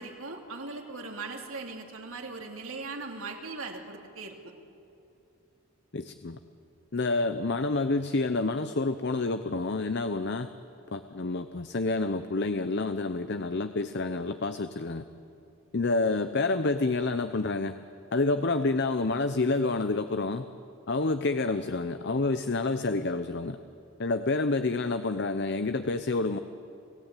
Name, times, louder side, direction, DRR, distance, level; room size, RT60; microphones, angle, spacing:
voice 1, 0.0-4.4, right 3 dB, 70° right, 2 dB, 3.0 m, -39 dB
voice 2, 5.9-6.4 6.9-10.5 10.9-15.0 15.7-17.7 18.1-20.4 20.9-23.6 24.0-26.4, left 3 dB, 50° left, 10 dB, 0.7 m, -28 dB
29.5 x 16.5 x 9.1 m, 2.7 s
head